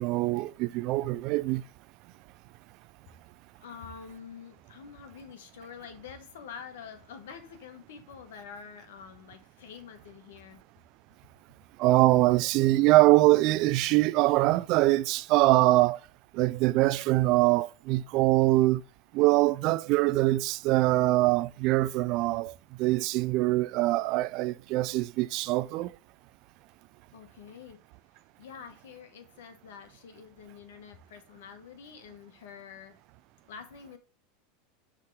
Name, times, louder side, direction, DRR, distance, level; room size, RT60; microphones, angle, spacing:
voice 1, 0.0-1.6 11.8-16.0 16.3-18.8 19.1-22.5 22.8-25.9, right 18 dB, 55° right, 0.4 m, -23 dB
voice 2, 3.6-10.6 27.1-27.8 28.4-33.0 33.5-34.0, left 7 dB, 75° left, 1.4 m, -47 dB
6.6 x 3.6 x 4.7 m
hypercardioid pair, 100°, 0 cm